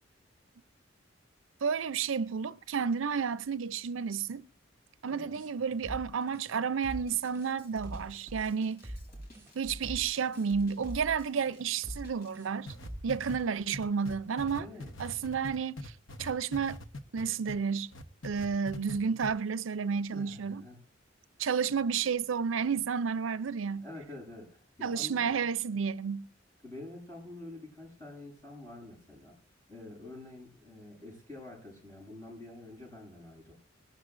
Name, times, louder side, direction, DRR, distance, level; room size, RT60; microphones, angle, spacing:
voice 1, 1.6-4.5 5.0-8.9 9.5-12.7 13.0-14.7 15.0-15.9 16.2-16.8 17.1-17.9 18.2-20.6 21.4-23.8 24.8-26.3, right 6 dB, 80° right, 0.5 m, -31 dB
voice 2, 5.0-5.4 14.6-14.9 20.1-20.8 23.8-25.4 26.6-29.4 29.7-33.5, left 2 dB, 20° left, 7.6 m, -47 dB
sound 1, 5.3-13.2, equal, 15° right, 2.9 m, -44 dB
Drum kit, 6.9-12.3, right 1 dB, 50° left, 3.2 m, -49 dB
sound 2, 12.7-17.6 17.9-19.0 19.2-19.3, left 1 dB, 80° left, 1.1 m, -42 dB
21.5 x 12.0 x 2.6 m
head